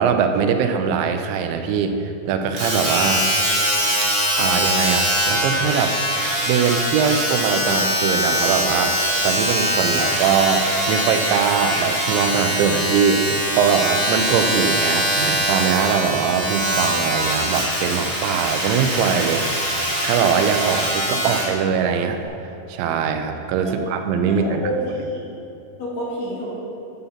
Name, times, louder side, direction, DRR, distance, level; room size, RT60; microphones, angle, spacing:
voice 1, 0.0-3.3 4.4-5.9 6.5-9.0 9.2-19.5 20.0-22.2 22.7-24.6, right 6 dB, 90° right, 6 dB, 3.1 m, -21 dB
Domestic sounds home sounds, 2.6-21.5 22.2-22.3, equal, 50° right, 0.6 m, -22 dB
voice 2, 24.3-25.2 25.8-26.6, equal, 50° left, -7 dB, 2.4 m, -28 dB
11.5 x 7.1 x 5.7 m, 2.8 s
omnidirectional pair, 5.2 m